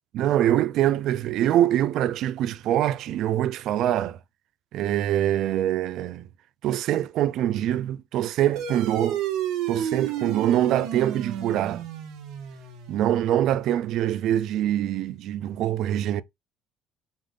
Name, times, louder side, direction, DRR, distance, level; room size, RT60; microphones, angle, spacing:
voice 1, 0.1-4.2 4.7-6.3 6.6-9.2 9.7-11.8 12.9-16.2, right 12 dB, 65° right, 0.4 m, -24 dB
sound 1, 8.6-13.4, right 10 dB, 85° right, 1.6 m, -32 dB
5.3 x 2.6 x 3.7 m
cardioid pair, 125°, 0 cm